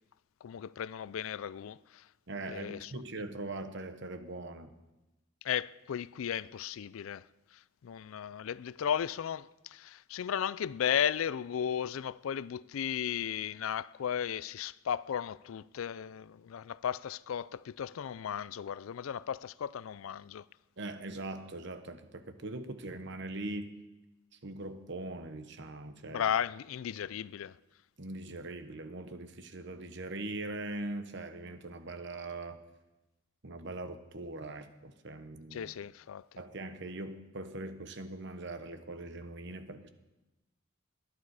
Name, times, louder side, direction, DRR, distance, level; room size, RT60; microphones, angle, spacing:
voice 1, 0.4-2.1 2.5-3.0 5.4-20.5 26.1-27.6 35.5-36.4, left 9 dB, 80° left, 0.4 m, -35 dB
voice 2, 2.3-4.7 20.8-23.7 24.4-26.3 28.0-32.6 33.4-35.7 36.4-39.9, right 2 dB, 60° right, 1.1 m, -41 dB
20.0 x 11.0 x 4.8 m
head